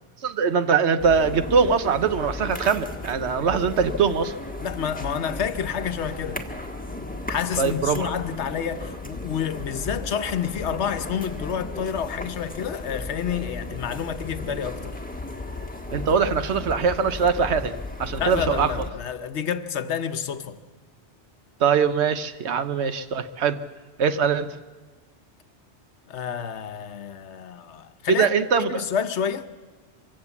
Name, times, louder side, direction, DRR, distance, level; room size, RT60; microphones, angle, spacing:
voice 1, 0.2-4.3 7.6-8.1 15.9-18.7 21.6-23.6 24.0-24.5 28.2-28.8, right 6 dB, 75° right, 1.2 m, -22 dB
sound 1, 1.0-18.9, left 2 dB, 10° left, 1.4 m, -35 dB
voice 2, 4.6-6.4 7.3-15.0 18.2-20.6 26.1-29.5, left 8 dB, 80° left, 1.1 m, -29 dB
23.5 x 16.5 x 7.2 m
omnidirectional pair, 1.2 m